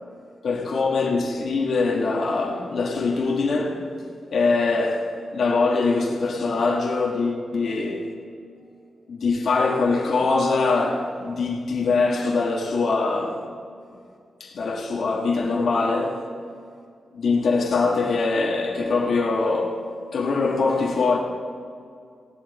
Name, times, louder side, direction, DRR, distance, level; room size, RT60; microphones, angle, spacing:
voice 1, 0.4-3.8 4.3-8.1 9.1-13.5 14.4-16.2 17.1-19.8 20.1-21.2, left 3 dB, 55° left, 1.5 m, -23 dB
16.5 x 11.5 x 4.1 m
wide cardioid pair, 175°, 0 cm